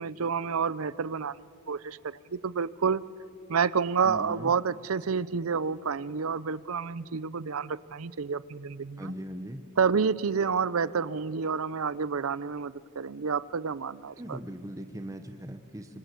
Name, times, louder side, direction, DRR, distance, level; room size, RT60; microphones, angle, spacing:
voice 1, 0.0-1.4 1.7-3.0 3.5-9.1 9.8-14.4, right 6 dB, 80° right, 18 dB, 0.6 m, -29 dB
voice 2, 4.0-4.5 9.0-9.6 14.1-16.0, equal, 15° right, 6 dB, 0.9 m, -39 dB
25.5 x 24.5 x 8.2 m, 2.4 s
head